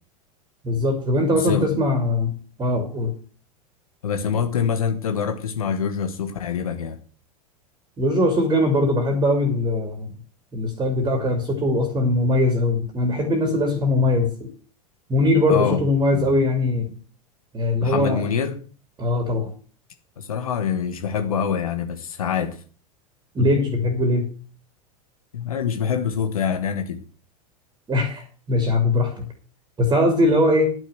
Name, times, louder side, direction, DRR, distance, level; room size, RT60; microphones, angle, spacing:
voice 1, 0.6-2.3 2.6-3.1 8.0-10.1 10.5-14.5 15.1-16.9 17.5-18.2 19.0-19.5 23.3-24.3 27.9-29.3 29.8-30.7, left 1 dB, 20° right, 2.8 m, -21 dB
voice 2, 1.3-1.7 4.0-7.0 15.5-15.8 16.1-16.3 17.8-18.6 20.2-22.6 25.3-27.0, left 7 dB, 70° left, 1.3 m, -25 dB
10.5 x 6.3 x 7.7 m
figure-of-eight pair, 85°, 19 cm